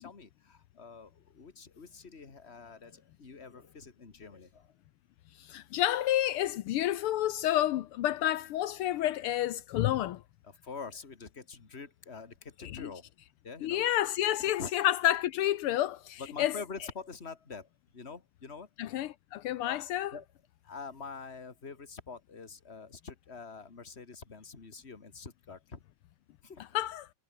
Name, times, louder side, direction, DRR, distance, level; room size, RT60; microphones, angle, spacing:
voice 1, 0.0-4.7 10.4-13.1 13.4-13.9 14.6-14.7 16.2-18.7 19.6-19.8 20.1-20.3 20.6-25.8 26.4-26.8, left 5 dB, 30° left, 2.5 m, -45 dB
voice 2, 5.4-10.2 12.7-12.9 13.6-16.6 18.8-20.1 26.7-27.1, left 13 dB, 80° left, 1.7 m, -29 dB
omnidirectional pair, 2.4 m